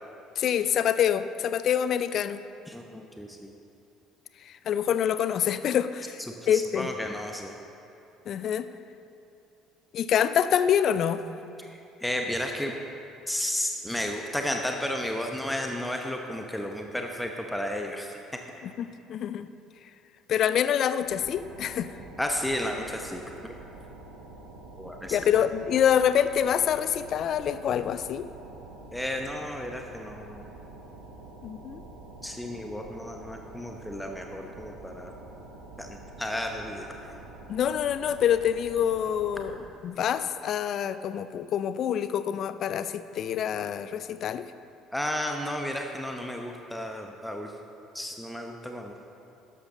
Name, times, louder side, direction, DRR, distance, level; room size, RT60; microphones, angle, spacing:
voice 1, 0.4-2.4 4.4-6.2 6.5-6.9 8.3-8.7 9.9-11.2 18.6-19.5 20.3-21.9 25.1-28.3 31.4-31.8 37.5-44.5, left 9 dB, 50° left, 13 dB, 0.4 m, -26 dB
voice 2, 2.7-3.5 6.5-7.6 11.6-12.7 13.3-18.1 22.2-23.5 24.8-25.2 28.9-30.4 32.2-35.1 35.8-36.9 44.9-47.5 47.9-48.9, left 1 dB, 5° left, 3 dB, 0.9 m, -33 dB
sound 1, 21.0-39.6, right 2 dB, 80° right, 1.2 m, -47 dB
13.0 x 11.0 x 3.8 m, 2.8 s
figure-of-eight pair, 55°, 0 cm